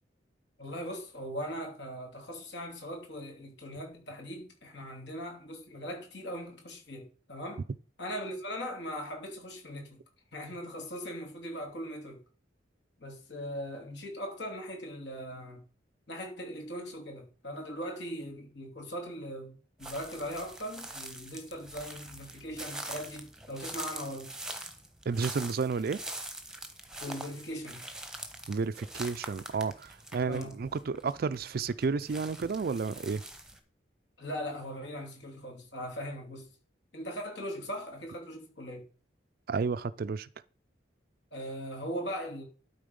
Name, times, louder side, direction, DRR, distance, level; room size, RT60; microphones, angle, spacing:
voice 1, 0.6-7.6 8.0-10.0 10.3-12.2 13.0-15.6 16.1-24.3 27.0-27.8 30.3-30.5 34.2-36.5 36.9-38.8 41.3-42.4, equal, 65° left, 2.8 m, -40 dB
sound 1, 19.8-33.6, right 1 dB, 5° right, 1.0 m, -44 dB
voice 2, 25.1-26.0 28.5-33.2 39.5-40.3, right 5 dB, 55° right, 0.4 m, -31 dB
12.0 x 4.0 x 5.3 m
head